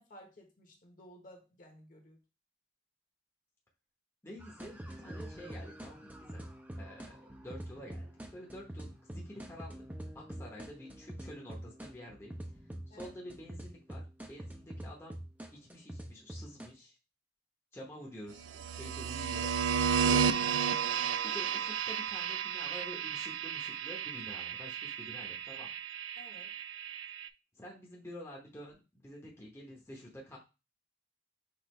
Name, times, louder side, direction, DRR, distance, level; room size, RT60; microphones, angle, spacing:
voice 1, 0.0-2.2 12.9-13.1 26.2-26.5, equal, 45° left, 2 dB, 1.1 m, -55 dB
voice 2, 4.2-6.5 6.8-9.8 10.1-12.4 12.9-15.2 15.5-16.9 17.7-19.5 20.0-20.6 21.2-25.7 27.5-30.4, equal, 15° left, -3 dB, 0.8 m, -49 dB
sound 1, 4.4-16.7, right 1 dB, 10° right, 0.5 m, -45 dB
sound 2, 18.5-27.3, right 7 dB, 75° right, 0.3 m, -33 dB
6.0 x 2.5 x 3.1 m, 0.29 s
head